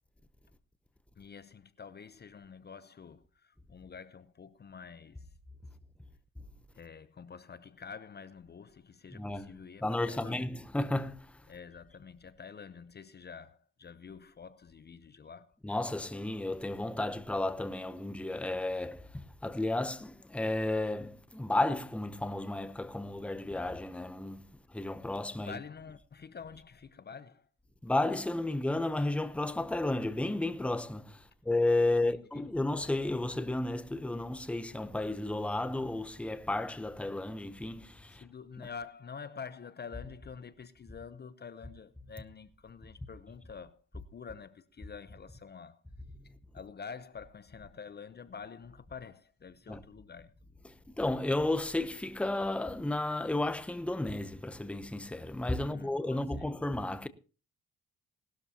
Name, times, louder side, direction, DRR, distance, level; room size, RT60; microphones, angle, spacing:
voice 1, 1.2-5.3 6.7-10.4 11.5-15.5 25.4-27.5 32.0-32.4 38.1-45.8 46.5-50.3 55.6-56.5, left 6 dB, 35° left, 0.7 m, -48 dB
voice 2, 9.1-9.5 9.8-11.4 15.6-25.6 27.8-38.2 38.6-38.7 49.7-49.8 50.6-57.1, left 2 dB, 5° left, 0.8 m, -33 dB
19.0 x 12.5 x 2.9 m
cardioid pair, 90°, 30 cm